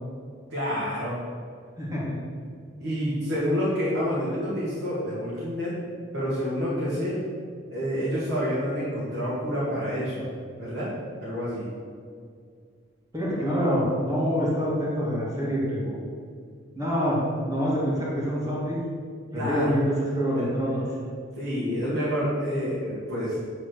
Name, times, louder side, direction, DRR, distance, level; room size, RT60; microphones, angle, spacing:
voice 1, 0.5-1.2 2.8-5.7 6.1-7.2 7.7-10.3 10.6-10.9 11.2-11.7 19.3-19.7 20.3-20.4 21.4-23.4, equal, 70° right, -9 dB, 2.4 m, -28 dB
voice 2, 1.8-2.2 13.1-16.0 16.7-17.2 17.5-18.8 19.3-20.8, equal, 15° right, -6 dB, 2.3 m, -26 dB
10.0 x 4.2 x 6.5 m, 2.2 s
head